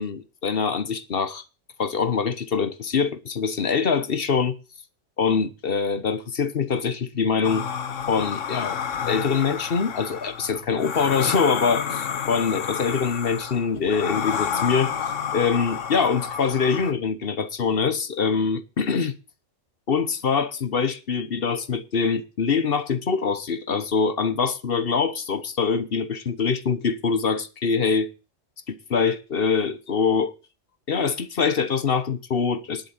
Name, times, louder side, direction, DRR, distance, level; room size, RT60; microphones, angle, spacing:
voice 1, 0.0-1.4 1.8-4.6 5.2-7.6 8.1-8.8 9.1-14.9 15.3-19.1 19.9-28.1 28.7-30.3 30.9-32.9, left 5 dB, 50° left, 1.2 m, -24 dB
sound 1, 7.4-16.9, left 7 dB, 75° left, 1.4 m, -30 dB
11.0 x 7.2 x 9.2 m
omnidirectional pair, 1.3 m